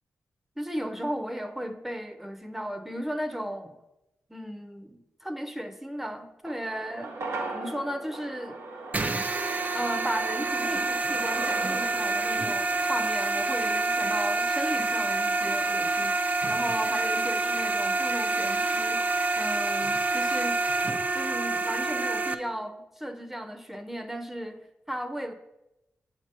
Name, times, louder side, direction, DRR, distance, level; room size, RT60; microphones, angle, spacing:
voice 1, 0.6-3.8 4.3-7.1 7.5-8.6 9.7-20.6 21.1-25.3, equal, 5° right, 7 dB, 0.8 m, -35 dB
sound 1, 6.5-15.0 15.3-15.4, right 3 dB, 85° right, 0.9 m, -40 dB
sound 2, 8.9-22.3, right 3 dB, 35° right, 0.5 m, -27 dB
7.7 x 2.9 x 6.1 m, 0.94 s
cardioid pair, 55°, 5 cm